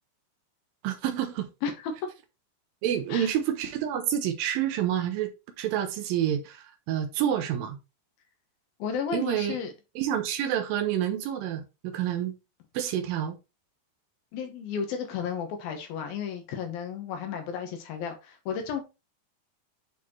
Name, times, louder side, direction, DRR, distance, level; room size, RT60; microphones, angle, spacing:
voice 1, 0.8-1.5 2.8-7.8 9.1-9.6 10.0-12.4 12.7-13.4, right 10 dB, 75° right, 2.2 m, -28 dB
voice 2, 1.6-1.9 3.1-3.3 8.8-9.7 14.3-18.8, left 6 dB, 70° left, 2.8 m, -33 dB
8.5 x 4.2 x 3.1 m
omnidirectional pair, 4.7 m